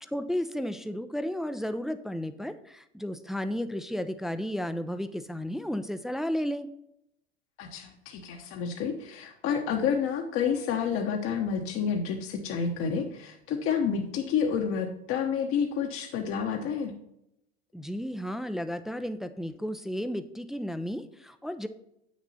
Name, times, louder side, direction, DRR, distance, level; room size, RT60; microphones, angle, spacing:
voice 1, 0.1-6.7 17.7-21.7, equal, ahead, 10 dB, 0.4 m, -33 dB
voice 2, 7.6-16.9, left 7 dB, 45° left, 3 dB, 1.0 m, -29 dB
8.3 x 6.2 x 4.1 m, 0.81 s
hypercardioid pair, 85°, 32 cm